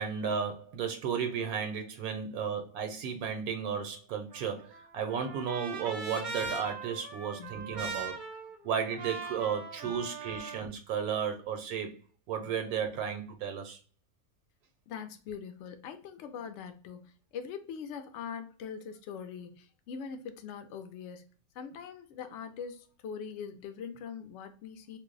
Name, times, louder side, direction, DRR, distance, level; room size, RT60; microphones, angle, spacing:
voice 1, 0.0-8.2 8.6-12.0 12.3-13.8, right 7 dB, 85° right, 1.1 m, -34 dB
Trumpet, 4.3-10.6, right 4 dB, 45° right, 0.4 m, -41 dB
voice 2, 14.9-21.2 21.5-25.0, left 7 dB, 65° left, 0.7 m, -42 dB
2.6 x 2.0 x 3.7 m
omnidirectional pair, 1.5 m